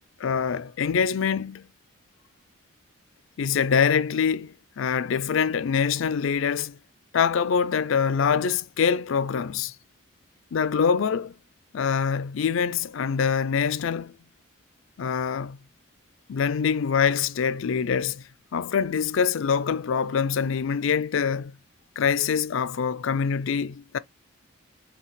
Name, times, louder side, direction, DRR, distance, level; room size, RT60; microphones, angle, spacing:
voice 1, 0.2-1.7 3.4-6.8 7.1-9.7 10.5-11.3 11.7-14.1 15.0-15.6 16.3-18.2 18.5-21.5 22.0-24.0, left 6 dB, 65° left, 0.4 m, -24 dB
5.6 x 2.8 x 3.1 m
head